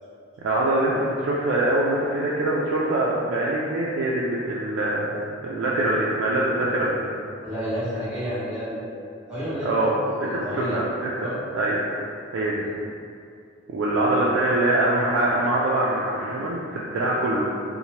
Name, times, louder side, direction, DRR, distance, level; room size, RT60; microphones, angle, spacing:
voice 1, 0.4-7.0 9.6-11.8 12.3-12.6 13.7-17.4, right 1 dB, 80° right, -5 dB, 0.3 m, -24 dB
voice 2, 7.4-9.0 9.3-10.8 11.2-11.3 12.5-12.7, equal, 5° right, -13 dB, 1.2 m, -30 dB
3.0 x 2.1 x 2.8 m, 2.4 s
head